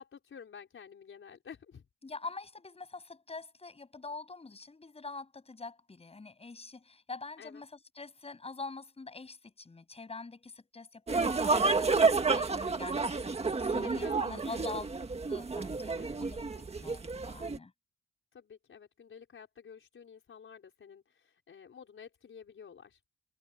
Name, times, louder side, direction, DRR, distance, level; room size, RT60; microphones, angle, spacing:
voice 1, 0.0-1.9 7.4-7.6 13.8-14.6 16.0-16.9 18.3-23.0, left 7 dB, 45° left, 5.1 m, -51 dB
voice 2, 2.0-13.1 13.4-14.9 15.3-16.5 16.8-17.7, left 3 dB, 20° left, 7.8 m, -45 dB
sound 1, 11.1-17.6, right 4 dB, 20° right, 1.7 m, -30 dB
wide cardioid pair, 160°, 29 cm